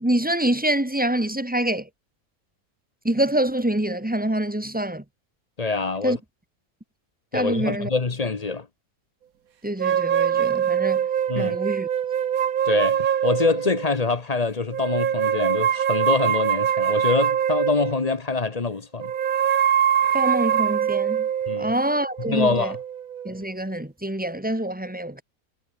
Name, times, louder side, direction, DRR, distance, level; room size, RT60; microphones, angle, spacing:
voice 1, 0.0-1.9 3.0-5.0 6.0-6.2 7.3-7.9 9.6-11.1 11.4-11.9 20.1-21.3 21.6-22.7 23.2-25.2, right 1 dB, 5° right, 1.3 m, -25 dB
voice 2, 5.6-6.2 7.3-8.7 11.3-11.6 12.7-19.1 21.5-21.7 22.3-22.8, left 3 dB, 30° left, 1.0 m, -25 dB
sound 1, 9.8-14.0 14.7-18.2 19.0-23.4, right 9 dB, 70° right, 1.5 m, -23 dB
omnidirectional pair, 1.6 m